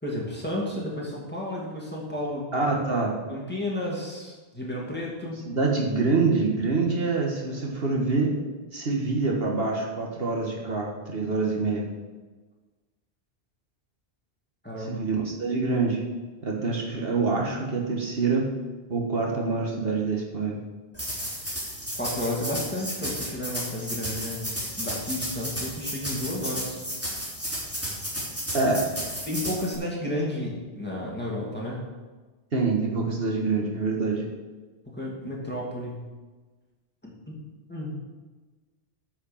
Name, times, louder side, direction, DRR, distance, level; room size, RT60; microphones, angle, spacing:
voice 1, 0.0-2.5 3.3-5.5 14.6-15.0 21.4-21.6 21.9-26.8 29.3-31.8 34.9-36.0 37.0-37.4 37.7-38.0, left 1 dB, 10° left, -4 dB, 2.5 m, -32 dB
voice 2, 2.5-3.1 5.5-8.3 8.7-11.8 14.8-16.0 16.4-18.5 18.9-20.6 28.5-28.9 32.5-34.3, right 3 dB, 60° right, -1 dB, 1.7 m, -26 dB
sound 1, 20.9-29.7, equal, 10° right, 3.3 m, -33 dB
9.7 x 6.6 x 7.0 m, 1.3 s
omnidirectional pair, 1.1 m